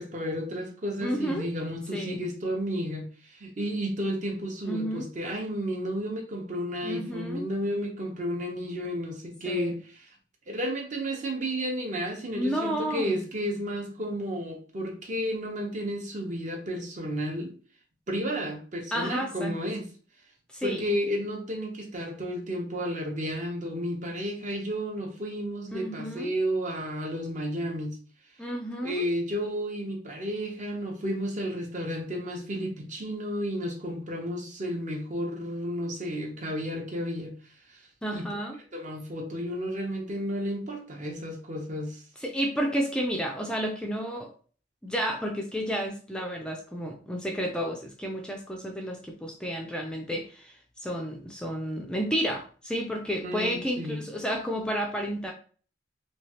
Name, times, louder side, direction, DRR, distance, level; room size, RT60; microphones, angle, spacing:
voice 1, 0.0-10.1 10.5-17.5 18.1-19.9 20.6-28.0 28.8-37.3 37.7-37.8 38.1-38.3 38.7-42.0 53.2-54.0, equal, 45° right, 0.7 m, -32 dB
voice 2, 1.0-1.5 1.9-2.2 4.6-5.0 6.8-7.4 9.5-9.7 12.3-13.2 18.9-19.5 20.5-20.9 25.7-26.3 28.4-29.1 38.0-38.6 42.2-44.3 44.8-50.5 50.8-55.3, equal, 5° left, 0.3 m, -31 dB
3.1 x 2.3 x 2.7 m
head